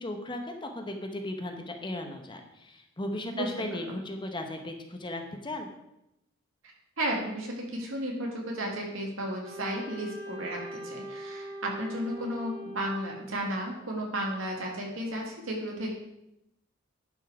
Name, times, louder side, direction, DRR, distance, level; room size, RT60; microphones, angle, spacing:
voice 1, 0.0-5.7, left 1 dB, 25° left, 4 dB, 1.0 m, -36 dB
voice 2, 3.3-4.0 7.0-15.9, right 1 dB, 75° right, -1 dB, 2.4 m, -33 dB
Wind instrument woodwind instrument, 9.4-13.4, right 1 dB, 25° right, 3.1 m, -42 dB
11.0 x 5.5 x 4.8 m, 0.84 s
head